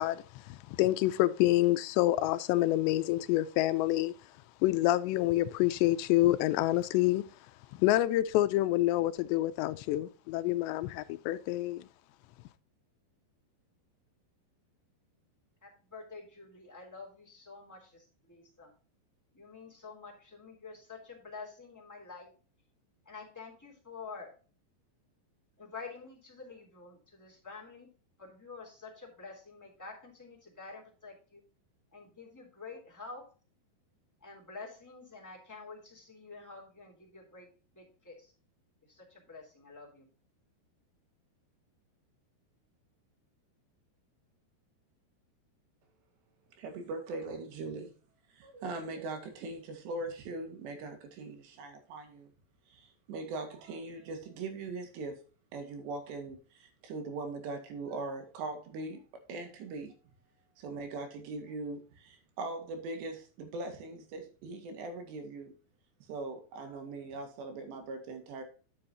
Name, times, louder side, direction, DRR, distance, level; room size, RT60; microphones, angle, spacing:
voice 1, 0.0-4.1 4.6-7.3 7.7-11.9, left 16 dB, 85° left, 2.8 m, -27 dB
voice 2, 15.6-18.7 19.3-22.3 23.0-24.3 25.6-27.9 28.2-31.4 31.9-33.3 34.2-38.3 38.8-40.1, left 4 dB, 5° left, 2.3 m, -48 dB
voice 3, 46.6-47.9 48.3-52.3 52.7-55.2 55.5-59.0 59.3-59.9 60.6-65.5 66.1-68.4, right 3 dB, 80° right, 4.0 m, -40 dB
11.5 x 6.9 x 2.7 m
omnidirectional pair, 5.0 m